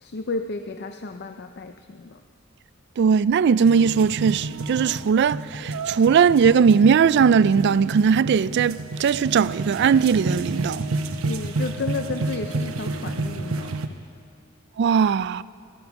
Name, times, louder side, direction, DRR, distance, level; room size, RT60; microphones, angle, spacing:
voice 1, 0.0-2.2 11.2-13.8, left 3 dB, 50° left, 0.5 m, -32 dB
voice 2, 3.0-10.9 14.8-15.4, right 6 dB, 55° right, 0.3 m, -19 dB
sound 1, 3.7-13.9, right 2 dB, 90° right, 0.9 m, -30 dB
18.5 x 12.5 x 6.0 m
head